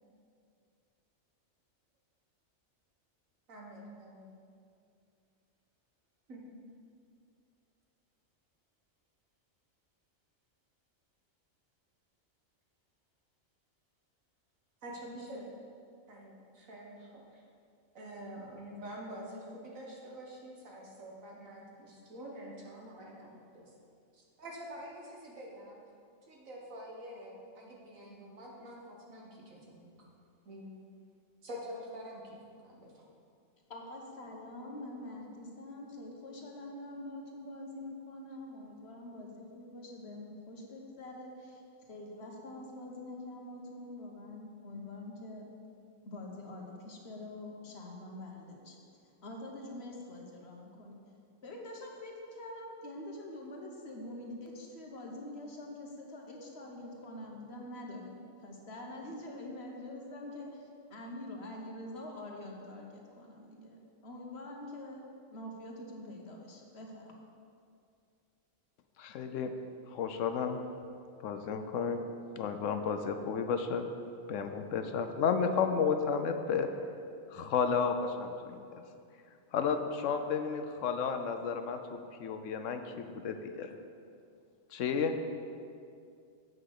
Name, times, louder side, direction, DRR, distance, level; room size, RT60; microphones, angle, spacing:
voice 1, 3.5-4.3 6.3-6.4 14.8-15.5 16.1-17.4 17.9-23.7 24.1-25.8 26.3-29.9 30.5-30.7 31.4-32.4 32.6-32.9, equal, 90° right, -3 dB, 1.9 m, -47 dB
voice 2, 33.7-45.5 46.0-48.8 49.2-51.0 51.4-65.0 65.3-67.1, left 1 dB, 55° left, 0 dB, 1.4 m, -45 dB
voice 3, 69.0-69.5 69.9-70.6 71.2-72.0 72.4-73.9 74.3-76.7 77.3-78.7 79.5-83.7 84.7-85.1, left 6 dB, 75° left, 7 dB, 1.0 m, -32 dB
7.9 x 5.8 x 6.6 m, 2.4 s
omnidirectional pair, 1.4 m